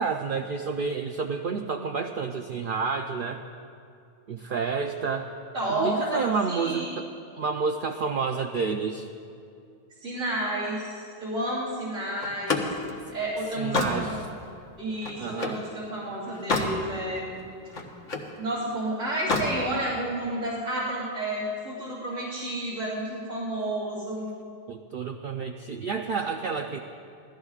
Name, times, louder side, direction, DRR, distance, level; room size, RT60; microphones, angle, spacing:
voice 1, 0.0-3.4 4.3-5.3 5.7-7.1 7.4-9.1 13.6-14.2 15.2-15.6 24.7-26.8, right 5 dB, 55° right, 3 dB, 0.7 m, -29 dB
voice 2, 5.5-6.9 10.0-12.6 13.1-14.2 14.8-17.3 18.4-24.3, right 1 dB, 85° right, -10 dB, 3.5 m, -31 dB
Slam, 12.2-15.7 16.1-16.8 17.2-18.3 19.1-19.6, left 3 dB, 80° left, 1.7 m, -29 dB
25.0 x 16.5 x 2.4 m, 2.4 s
omnidirectional pair, 1.3 m